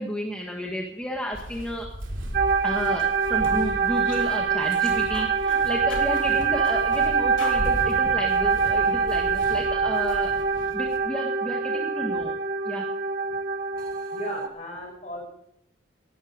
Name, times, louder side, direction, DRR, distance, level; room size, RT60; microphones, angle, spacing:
voice 1, 0.0-1.9 2.6-10.3 10.7-12.3 12.6-12.8, equal, 5° left, -1 dB, 1.6 m, -32 dB
Walk footsteps, 1.3-11.0, equal, 85° right, 2.9 m, -37 dB
sound 1, 2.3-14.5, right 5 dB, 45° right, 1.6 m, -24 dB
sound 2, 2.9-3.1 3.4-3.6 4.1-4.3 4.7-5.6 5.9-7.0 7.4-7.6, left 4 dB, 85° left, 3.6 m, -40 dB
voice 2, 14.1-15.2, left 1 dB, 40° left, 0 dB, 6.7 m, -36 dB
17.0 x 12.5 x 5.2 m, 0.71 s
head